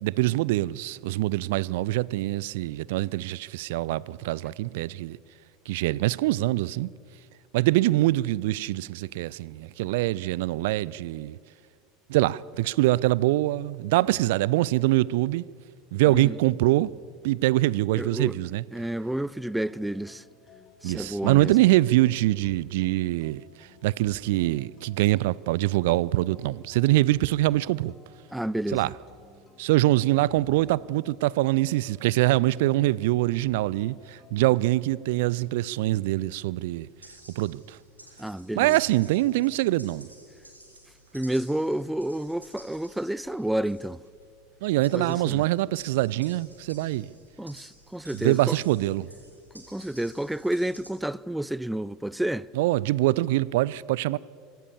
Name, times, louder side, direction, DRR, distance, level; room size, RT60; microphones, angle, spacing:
voice 1, 0.0-5.2 5.7-6.9 7.5-11.4 12.1-15.4 15.9-16.9 17.2-18.6 20.8-27.9 28.7-28.9 29.6-36.9 37.4-37.8 38.5-40.1 44.6-47.1 48.1-49.1 52.5-54.2, right 17 dB, 60° right, 0.4 m, -24 dB
voice 2, 17.9-18.3 18.7-20.2 20.8-21.5 28.3-28.9 38.2-38.8 41.1-44.0 44.9-45.4 47.4-48.6 49.5-52.5, right 1 dB, 5° right, 0.5 m, -30 dB
sound 1, 19.0-34.6, left 5 dB, 35° left, 4.0 m, -55 dB
sound 2, 36.7-50.9, right 1 dB, 85° right, 3.5 m, -53 dB
25.0 x 17.0 x 7.2 m
figure-of-eight pair, 75°, 0 cm